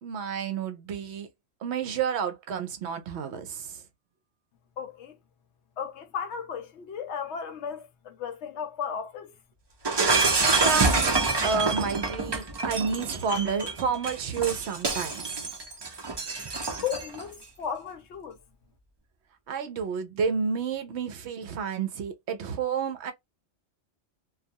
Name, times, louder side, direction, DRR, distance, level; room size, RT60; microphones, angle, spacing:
voice 1, 0.0-1.3 1.6-3.8 10.6-11.2 11.4-15.5 19.5-23.1, right 6 dB, 70° right, 0.8 m, -30 dB
voice 2, 4.8-5.2 5.8-9.3 16.7-18.4, left 7 dB, 70° left, 0.8 m, -35 dB
Shatter, 9.8-17.2, right 3 dB, 45° right, 0.3 m, -26 dB
2.3 x 2.3 x 2.6 m
omnidirectional pair, 1.3 m